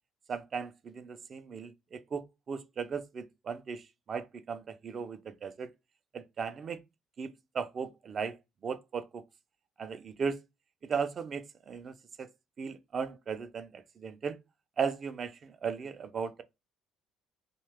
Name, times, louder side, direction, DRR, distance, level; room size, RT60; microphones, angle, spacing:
voice 1, 0.3-5.7 6.1-6.8 7.2-8.4 8.6-9.2 9.8-10.4 10.8-12.3 12.6-14.4 14.8-16.4, right 6 dB, 40° right, 0.4 m, -37 dB
2.7 x 2.2 x 3.3 m
cardioid pair, 105°, 0 cm